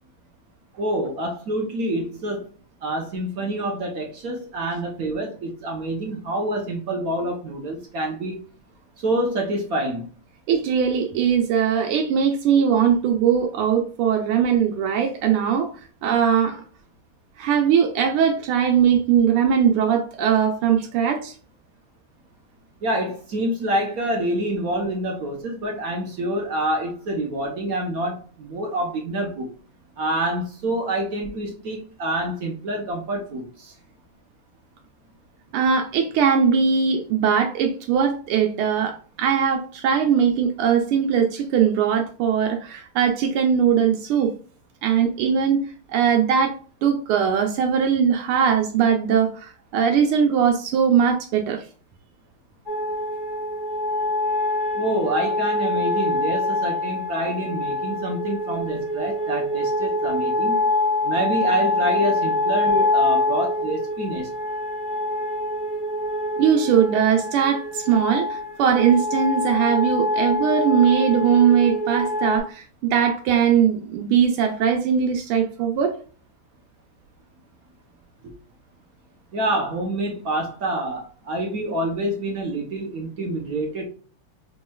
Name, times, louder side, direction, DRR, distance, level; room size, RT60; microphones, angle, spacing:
voice 1, 0.8-2.5 2.8-8.4 9.0-10.1 22.8-29.5 30.0-33.7 54.7-60.6 61.0-64.3 78.2-78.3 79.3-83.8, right 1 dB, 65° right, 0.9 m, -27 dB
voice 2, 10.5-15.7 16.0-16.6 17.4-21.3 35.5-44.3 44.8-46.5 46.8-51.6 66.4-76.0, right 7 dB, 80° right, 1.5 m, -20 dB
sound 1, 52.7-72.4, left 2 dB, 40° right, 1.6 m, -25 dB
5.2 x 3.0 x 2.2 m
omnidirectional pair, 2.4 m